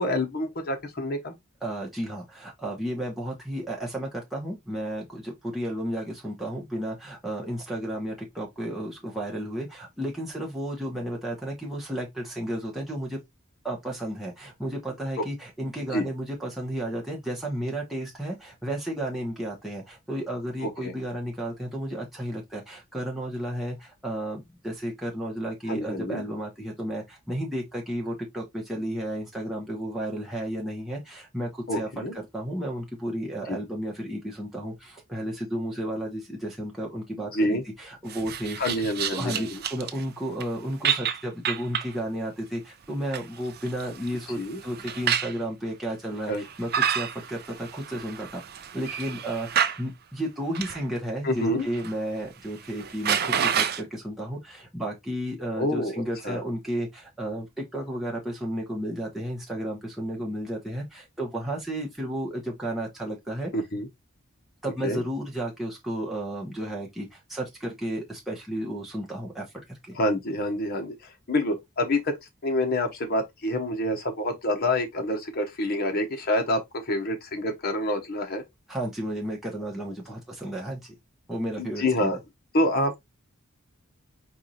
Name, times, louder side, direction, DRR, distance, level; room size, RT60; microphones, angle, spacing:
voice 1, 0.0-1.3 15.9-16.1 20.6-20.9 25.7-26.2 31.7-32.1 33.5-33.6 37.2-37.6 38.6-39.6 44.4-44.6 46.3-46.4 51.2-51.7 55.6-56.4 63.5-63.9 64.8-65.0 69.9-72.1 72.4-78.4 81.6-82.2 82.5-83.0, left 1 dB, 50° left, 1.0 m, -27 dB
voice 2, 1.6-13.2 13.6-31.9 32.3-38.6 39.1-63.5 64.6-70.0 78.7-80.9 81.3-82.2, right 1 dB, ahead, 1.1 m, -33 dB
sound 1, 38.1-40.0 40.4-40.5 40.8-42.0 42.8-45.4 46.3-49.8 50.5-50.8 51.4-52.0 52.2-52.3 52.7-53.8, right 8 dB, 50° right, 0.5 m, -29 dB
4.7 x 2.4 x 4.1 m
head